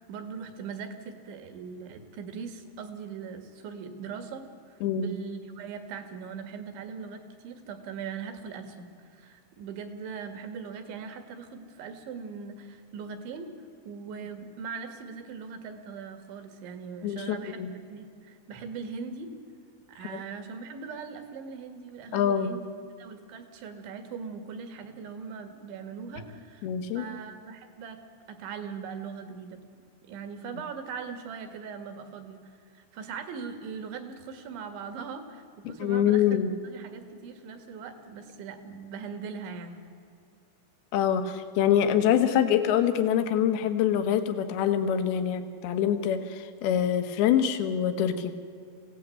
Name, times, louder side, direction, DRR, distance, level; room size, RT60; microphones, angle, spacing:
voice 1, 0.0-13.5 13.9-17.6 17.9-19.3 19.9-22.7 23.0-26.7 26.9-28.0 28.3-29.6 30.0-39.8, right 6 dB, 65° right, 9 dB, 4.0 m, -40 dB
voice 2, 4.8-5.1 17.0-17.7 22.1-22.5 26.6-27.0 35.8-36.5 40.9-48.3, left 9 dB, 65° left, 8 dB, 2.8 m, -25 dB
25.0 x 17.0 x 9.2 m, 2.3 s
omnidirectional pair, 5.9 m